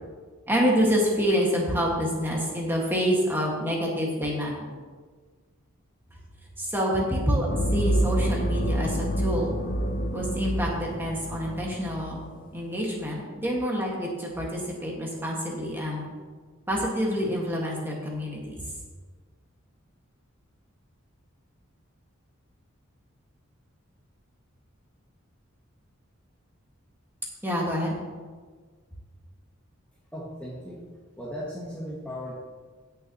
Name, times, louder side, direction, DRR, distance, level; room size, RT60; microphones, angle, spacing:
voice 1, 0.5-4.6 6.6-7.5 7.7-9.5 10.1-12.2 12.5-16.1 16.7-18.5 27.4-28.0, equal, 10° right, -3 dB, 1.9 m, -27 dB
sound 1, 7.5-12.3, right 1 dB, 40° left, 0.7 m, -27 dB
voice 2, 30.1-30.8 31.2-32.3, equal, 5° left, -6 dB, 1.3 m, -36 dB
15.5 x 6.8 x 3.1 m, 1.5 s
head